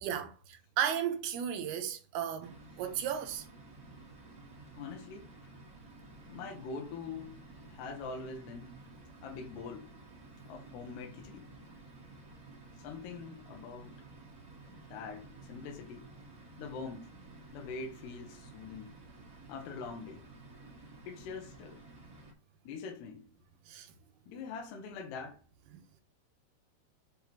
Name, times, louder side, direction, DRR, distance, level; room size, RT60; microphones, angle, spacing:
voice 1, 0.0-3.5 23.7-23.9, right 9 dB, 80° right, 2.4 m, -35 dB
sound 1, 2.4-22.3, right 2 dB, 35° right, 1.4 m, -53 dB
voice 2, 4.8-5.3 6.3-8.7 9.2-9.9 10.5-11.5 12.8-14.0 14.9-16.1 16.6-17.1 17.5-19.0 19.5-20.2 21.1-21.8 22.6-23.3 24.3-25.4, left 4 dB, 75° left, 3.2 m, -43 dB
7.8 x 3.8 x 4.5 m
omnidirectional pair, 5.1 m